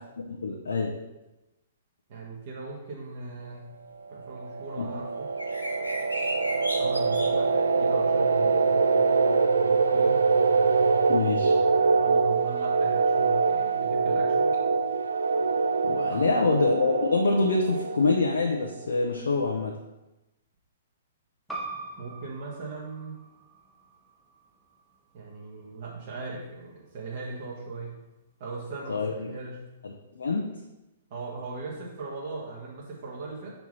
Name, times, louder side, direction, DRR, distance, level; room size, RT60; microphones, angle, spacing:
voice 1, 0.3-0.9 4.8-4.9 11.1-11.5 15.8-19.7 28.9-29.3 30.1-30.5, left 3 dB, 65° left, 0 dB, 0.9 m, -25 dB
voice 2, 2.1-3.7 4.1-5.3 6.8-9.1 9.6-10.2 12.0-14.5 16.1-16.4 22.0-23.2 25.1-28.0 28.4-29.6 31.1-33.5, right 3 dB, 45° right, -4 dB, 1.7 m, -39 dB
sound 1, 4.2-18.7, right 4 dB, 70° right, 0.5 m, -24 dB
sound 2, 5.4-7.3, equal, 90° left, 1.2 m, -34 dB
sound 3, 21.5-26.7, right 3 dB, ahead, 1.0 m, -44 dB
5.9 x 4.6 x 5.6 m, 0.99 s
figure-of-eight pair, 115°, 0 cm